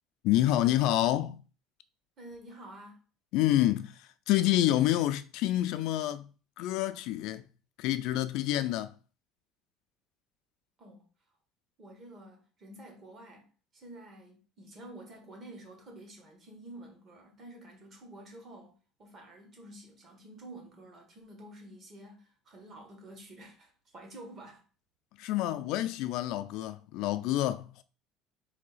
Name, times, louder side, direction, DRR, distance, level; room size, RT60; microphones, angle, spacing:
voice 1, 0.2-1.4 3.3-6.3 6.6-7.4 7.8-8.9 25.2-27.8, left 14 dB, 65° left, 0.3 m, -28 dB
voice 2, 2.2-3.0 10.8-11.0 11.8-24.6, right 1 dB, 35° right, 1.4 m, -50 dB
3.8 x 2.7 x 4.0 m
cardioid pair, 150°, 0 cm